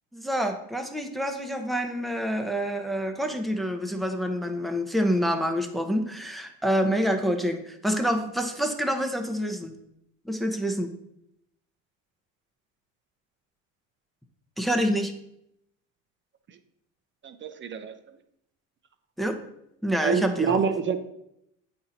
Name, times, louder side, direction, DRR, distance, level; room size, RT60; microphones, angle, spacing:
voice 1, 0.1-9.7 10.3-10.9 14.6-15.1 19.2-19.4 19.8-20.6, equal, ahead, 4 dB, 0.9 m, -27 dB
voice 2, 17.2-17.9 20.0-21.0, right 6 dB, 30° right, 10 dB, 0.8 m, -27 dB
8.5 x 4.3 x 4.1 m, 0.80 s
hypercardioid pair, 85°, 39 cm